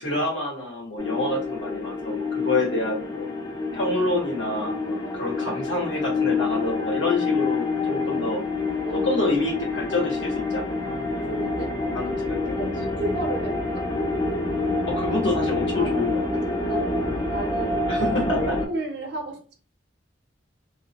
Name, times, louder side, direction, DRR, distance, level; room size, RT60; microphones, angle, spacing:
voice 1, 0.0-3.3 3.7-8.4 8.9-11.0 11.9-12.6 14.9-16.6 17.9-18.6, left 2 dB, 80° left, 1.2 m, -27 dB
sound 1, 1.0-18.7, left 3 dB, 20° left, 0.4 m, -27 dB
voice 2, 5.0-5.3 8.8-9.1 11.3-11.8 12.0-13.9 15.8-17.9 18.4-19.5, right 1 dB, 60° right, 0.6 m, -35 dB
2.4 x 2.1 x 2.8 m
head